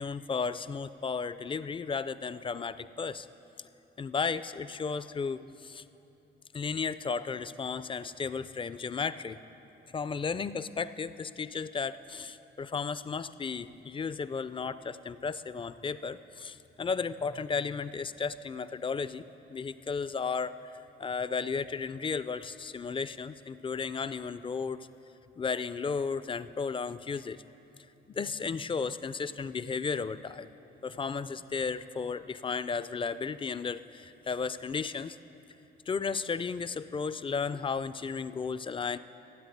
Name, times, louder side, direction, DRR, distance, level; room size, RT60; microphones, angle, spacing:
voice 1, 0.0-3.3 4.0-5.8 6.5-9.4 9.9-24.9 25.4-27.4 28.1-30.5 30.8-35.2 35.9-39.0, left 5 dB, 25° left, 14 dB, 0.4 m, -34 dB
14.0 x 8.0 x 9.3 m, 2.9 s
cardioid pair, 90°, 20 cm